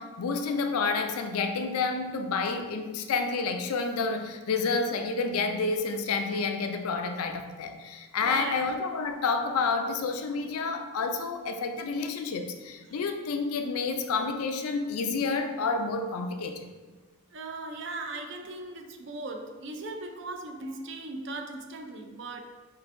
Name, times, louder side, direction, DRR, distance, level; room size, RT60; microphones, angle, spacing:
voice 1, 0.0-16.7, left 4 dB, 85° left, 6 dB, 0.4 m, -29 dB
voice 2, 8.2-8.7 17.3-22.4, right 2 dB, 55° right, 4 dB, 0.4 m, -38 dB
5.5 x 2.6 x 2.5 m, 1.3 s
head